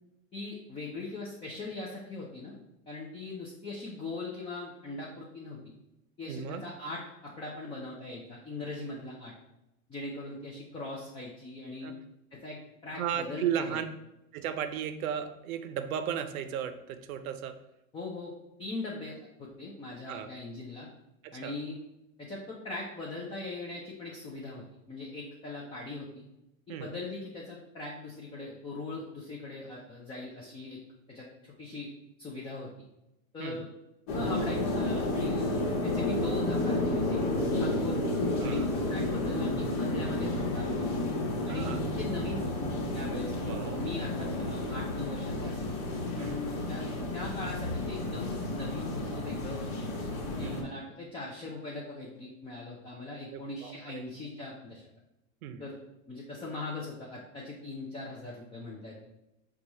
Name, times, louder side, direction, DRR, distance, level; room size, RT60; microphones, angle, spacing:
voice 1, 0.3-2.5 2.9-5.6 6.2-9.3 9.9-11.9 12.3-12.6 12.8-13.8 17.9-18.3 18.6-20.9 21.3-21.8 22.2-26.2 26.7-30.8 31.1-31.9 32.2-32.7 33.3-33.7 34.1-38.0 38.4-41.0 41.4-42.5 42.9-43.3 43.6-45.7 46.2-46.9 47.1-49.9 50.3-54.8 55.6-55.8 56.1-59.0, left 2 dB, 15° left, -4 dB, 0.4 m, -40 dB
voice 2, 6.3-6.7 11.8-11.9 12.9-13.8 14.3-17.6 20.1-20.3 21.2-21.5 26.7-26.9 33.4-33.6 38.4-38.7 41.5-41.8 43.3-43.9 46.2-46.4 50.4-50.6 53.3-54.0 55.4-55.6, right 9 dB, 75° right, 10 dB, 0.6 m, -35 dB
sound 1, 34.1-50.6, left 2 dB, 60° left, 1.3 m, -31 dB
4.6 x 2.4 x 4.0 m, 0.90 s
hypercardioid pair, 125°, 43 cm